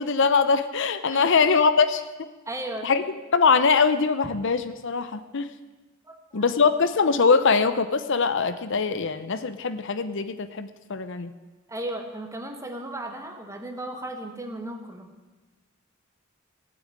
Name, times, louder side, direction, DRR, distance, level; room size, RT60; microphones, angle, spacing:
voice 1, 0.0-2.0 2.8-3.0 3.3-5.5 6.3-11.3, left 5 dB, 65° left, 11 dB, 0.7 m, -22 dB
voice 2, 1.1-1.4 2.4-2.9 6.0-6.5 11.7-15.1, right 1 dB, 15° right, 4 dB, 1.7 m, -35 dB
16.5 x 7.8 x 9.3 m, 1.2 s
head